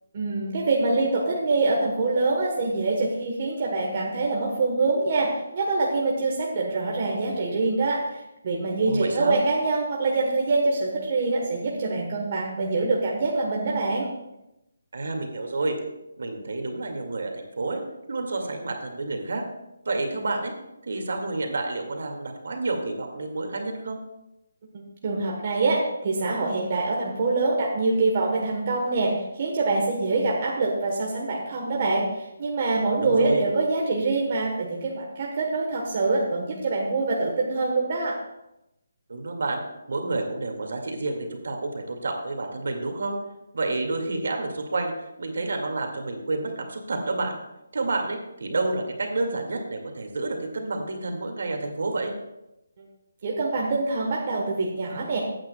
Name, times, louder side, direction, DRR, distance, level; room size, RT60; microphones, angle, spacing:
voice 1, 0.1-14.1 24.7-38.2 52.8-52.9 53.2-55.2, right 3 dB, 30° right, -2 dB, 1.1 m, -25 dB
voice 2, 8.9-9.4 14.9-15.8 16.2-17.8 18.1-19.4 19.8-20.5 20.8-24.0 33.0-33.4 39.1-39.6 39.9-43.2 43.5-44.9 45.2-47.4 47.7-52.1, right 2 dB, 60° right, 2 dB, 2.0 m, -29 dB
15.0 x 8.8 x 2.3 m, 0.91 s
hypercardioid pair, 175°, 0 cm